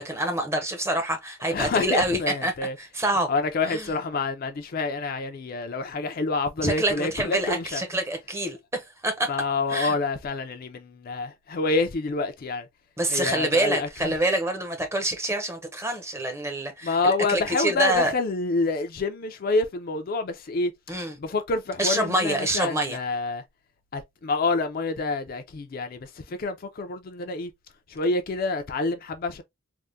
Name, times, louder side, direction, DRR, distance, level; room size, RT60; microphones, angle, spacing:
voice 1, 0.0-2.5 2.8-3.3 3.7-3.9 6.6-9.3 9.7-9.9 13.0-18.1 20.9-21.2 21.8-23.0, right 1 dB, 15° right, 0.6 m, -26 dB
voice 2, 1.5-2.8 3.3-7.8 9.3-12.7 13.1-14.2 16.8-20.7 21.2-23.4 23.9-27.5 27.9-29.4, left 3 dB, 45° left, 0.4 m, -27 dB
3.4 x 2.1 x 2.5 m
head